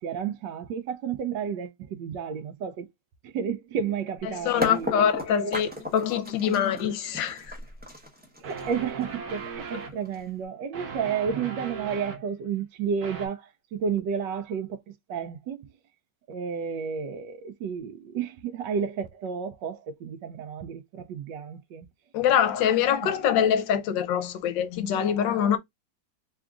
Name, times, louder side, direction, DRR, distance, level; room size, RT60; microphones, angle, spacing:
voice 1, 0.0-2.9 3.2-4.9 5.3-5.7 6.4-6.6 8.4-14.8 15.1-15.7 16.3-21.9 23.0-23.1, right 7 dB, 75° right, 1.2 m, -32 dB
voice 2, 4.3-7.5 9.7-9.8 22.1-25.6, left 9 dB, 75° left, 1.3 m, -24 dB
sound 1, 4.6-10.4, left 1 dB, 10° right, 0.4 m, -35 dB
sound 2, 7.6-7.7 8.4-9.9 10.7-12.2 13.0-13.3, right 5 dB, 55° right, 1.4 m, -38 dB
3.6 x 2.3 x 3.5 m
omnidirectional pair, 2.1 m